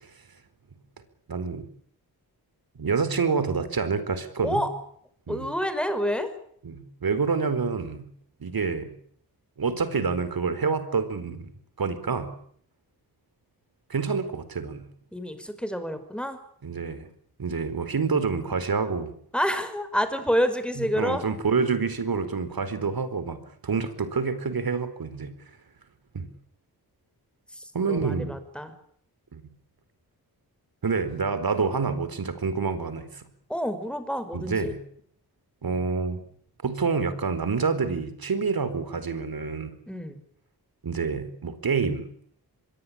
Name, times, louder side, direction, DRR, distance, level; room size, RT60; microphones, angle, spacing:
voice 1, 1.3-1.6 2.8-4.6 5.3-5.5 6.6-8.1 8.4-8.9 9.6-11.5 11.8-12.3 13.9-14.9 16.6-17.1 17.4-19.1 20.8-25.3 26.1-26.3 27.7-28.4 29.3-29.4 30.8-33.3 34.3-34.8 35.6-36.2 36.6-39.7 40.8-42.1, right 5 dB, 65° right, 12 dB, 4.5 m, -27 dB
voice 2, 5.3-6.3 15.1-16.4 19.3-21.2 27.5-28.7 33.5-34.7 39.9-40.2, equal, 5° left, 10 dB, 5.6 m, -28 dB
25.5 x 22.5 x 8.8 m, 0.63 s
wide cardioid pair, 85°, 38 cm